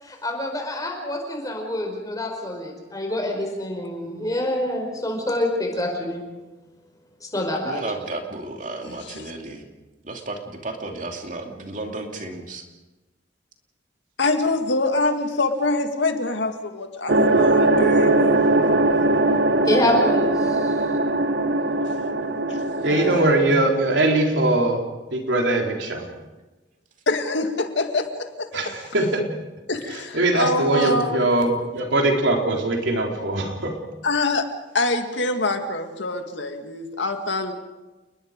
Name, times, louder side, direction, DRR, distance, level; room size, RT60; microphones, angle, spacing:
voice 1, 0.0-6.2 7.2-7.8 19.6-20.7 22.9-23.4, left 1 dB, 20° left, 2 dB, 5.1 m, -26 dB
voice 2, 7.6-9.7 10.0-12.7, right 2 dB, 45° right, 3 dB, 2.8 m, -33 dB
voice 3, 8.8-9.3 14.2-18.2 22.5-22.6 27.1-28.5 29.7-31.3 34.0-34.5 34.7-37.5, left 2 dB, 80° left, 6 dB, 2.0 m, -25 dB
sound 1, 17.1-23.3, right 2 dB, 70° right, 1.2 m, -20 dB
voice 4, 22.8-24.8 25.1-26.1 28.5-29.3 30.1-33.7, right 2 dB, 90° right, 1 dB, 3.9 m, -21 dB
29.5 x 20.5 x 5.2 m, 1.1 s
head